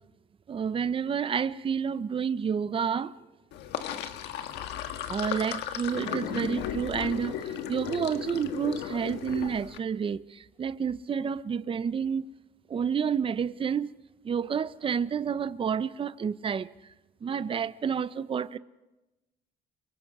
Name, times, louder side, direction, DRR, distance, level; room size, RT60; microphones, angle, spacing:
voice 1, 0.5-3.1 5.1-12.3 12.7-13.9 14.2-16.7 17.2-18.6, right 7 dB, 30° right, 0.7 m, -29 dB
Sink (filling or washing), 3.5-9.8, left 10 dB, 85° left, 1.5 m, -35 dB
28.0 x 23.5 x 4.9 m
cardioid pair, 110°, 17 cm